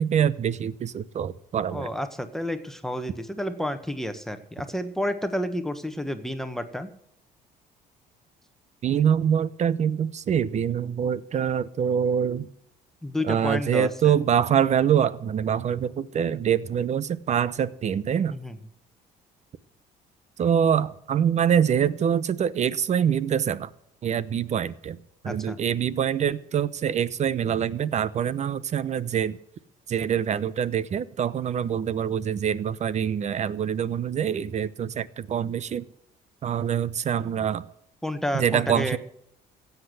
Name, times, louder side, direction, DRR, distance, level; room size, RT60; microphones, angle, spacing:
voice 1, 0.0-1.9 8.8-12.5 13.2-18.4 20.4-23.7 24.0-25.0 25.2-29.4 29.9-35.8 36.4-37.6 38.3-39.0, right 8 dB, 45° right, 18 dB, 0.8 m, -25 dB
voice 2, 1.7-6.9 13.0-14.1 18.3-18.6 25.2-25.6 38.0-39.0, left 1 dB, ahead, 8 dB, 1.3 m, -30 dB
16.0 x 8.2 x 7.8 m, 0.74 s
cardioid pair, 110°, 17 cm